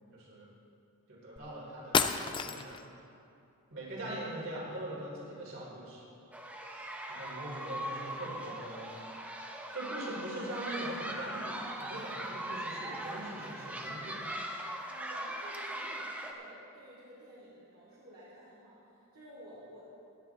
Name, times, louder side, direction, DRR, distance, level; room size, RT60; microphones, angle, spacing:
voice 1, 0.1-0.5 1.1-2.8 3.7-6.0 7.1-9.0 9.7-14.2, right 1 dB, 60° right, -5 dB, 3.5 m, -42 dB
sound 1, 1.4-1.5 1.9-2.9, left 6 dB, 20° left, 0.3 m, -30 dB
sound 2, 6.3-16.3, right 1 dB, 5° right, 0.7 m, -40 dB
voice 2, 14.9-19.8, equal, 75° right, -9 dB, 2.4 m, -53 dB
16.0 x 11.0 x 3.6 m, 2.6 s
head